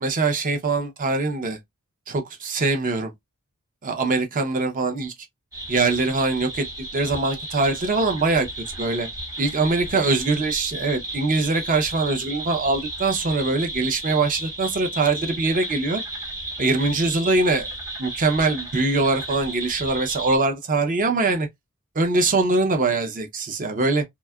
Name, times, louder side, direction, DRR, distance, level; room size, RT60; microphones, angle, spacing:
voice 1, 0.0-1.6 2.1-3.1 3.8-5.1 5.7-6.7 6.9-8.5 8.8-9.1 9.4-16.0 16.6-17.7 18.0-21.5 22.0-24.0, right 3 dB, 40° right, 0.5 m, -22 dB
sound 1, 5.5-20.4, right 1 dB, 15° right, 1.0 m, -34 dB
2.7 x 2.2 x 2.3 m
head